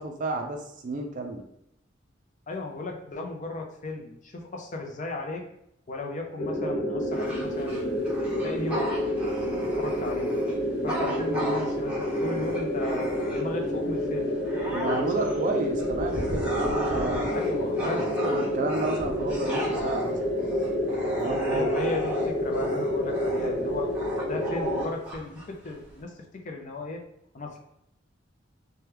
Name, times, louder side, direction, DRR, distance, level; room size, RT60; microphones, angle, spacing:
voice 1, 0.0-1.4 14.6-17.3 18.1-20.2 21.2-21.7, right 2 dB, 40° right, 3 dB, 0.4 m, -31 dB
voice 2, 2.5-5.4 5.9-8.9 9.4-10.3 10.8-14.3 15.2-15.7 17.3-18.0 21.5-27.0 27.3-27.6, left 2 dB, 40° left, 2 dB, 0.5 m, -36 dB
sound 1, 6.4-24.8, equal, 90° left, 0.9 m, -28 dB
Bark / Growling, 7.1-13.7 14.1-26.0, equal, 10° right, 0.9 m, -35 dB
2.9 x 2.2 x 3.3 m, 0.78 s
head